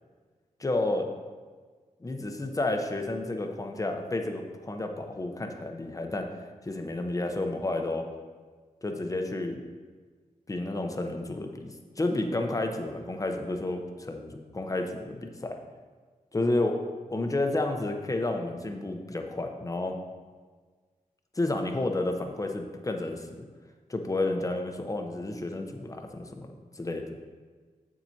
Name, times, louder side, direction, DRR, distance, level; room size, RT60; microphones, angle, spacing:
voice 1, 0.6-1.1 2.0-6.3 6.6-8.1 8.8-9.6 10.5-15.6 16.3-16.8 17.1-20.0 21.4-23.3 23.9-27.2, left 2 dB, 25° left, 4 dB, 0.7 m, -31 dB
7.6 x 7.4 x 2.8 m, 1.5 s
wide cardioid pair, 90°, 14 cm